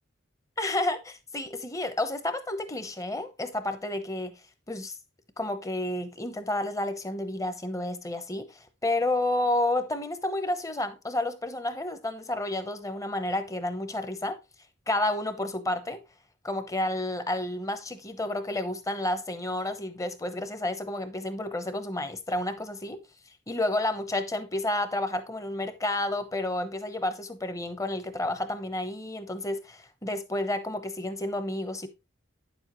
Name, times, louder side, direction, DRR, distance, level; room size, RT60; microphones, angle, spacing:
voice 1, 0.6-4.3 4.7-4.9 5.4-14.4 14.9-16.0 16.4-23.0 23.5-31.9, left 1 dB, 15° left, 0.9 m, -30 dB
9.5 x 7.1 x 3.1 m
head